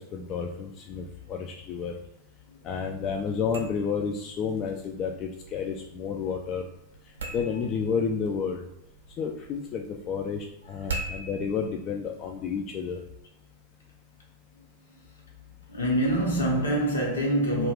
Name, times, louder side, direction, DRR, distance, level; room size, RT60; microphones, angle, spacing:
voice 1, 0.0-2.0 2.6-6.7 7.3-8.6 9.2-13.0, left 6 dB, 35° left, 0.3 m, -31 dB
sound 1, 3.3-13.1, right 3 dB, 65° right, 0.5 m, -43 dB
voice 2, 10.6-11.0 12.6-12.7 14.6-15.2 15.7-17.7, right 1 dB, 70° left, 1.0 m, -27 dB
2.4 x 2.3 x 3.4 m
figure-of-eight pair, 90°, 0 cm